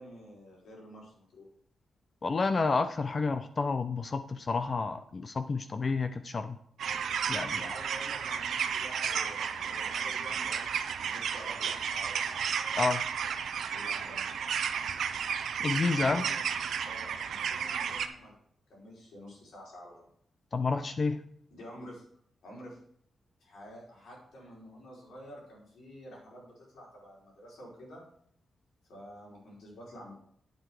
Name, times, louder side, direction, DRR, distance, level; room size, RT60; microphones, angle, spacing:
voice 1, 0.0-1.5 7.6-12.4 13.7-14.3 15.8-16.4 16.8-18.3 18.7-20.0 21.5-22.0 22.4-22.8 23.4-28.0 28.9-30.1, equal, 90° left, -4 dB, 5.1 m, -49 dB
voice 2, 2.2-6.6 7.3-7.6 12.8-13.0 15.6-16.3 20.5-21.2, left 4 dB, 35° left, 9 dB, 0.5 m, -30 dB
sound 1, 6.8-18.1, right 7 dB, 85° right, 0.7 m, -33 dB
9.0 x 7.9 x 4.7 m, 0.65 s
wide cardioid pair, 135°, 0 cm